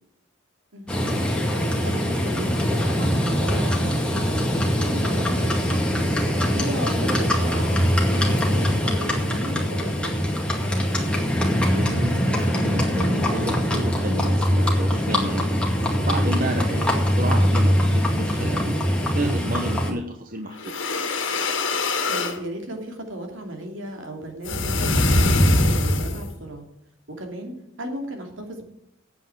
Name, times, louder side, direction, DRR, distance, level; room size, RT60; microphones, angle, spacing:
voice 1, 0.7-5.8 6.3-10.3 19.6-19.8 22.1-26.6 27.2-28.6, right 1 dB, 75° right, 3 dB, 2.8 m, -35 dB
Livestock farm animals working animals, 0.9-19.9, equal, 5° left, 2.1 m, -22 dB
voice 2, 11.6-15.5 16.0-18.8 19.1-20.8, right 1 dB, 45° right, 4 dB, 1.0 m, -31 dB
sound 1, 20.6-22.4 24.4-26.3, left 2 dB, 70° left, 1.6 m, -22 dB
9.2 x 8.1 x 8.7 m, 0.78 s
head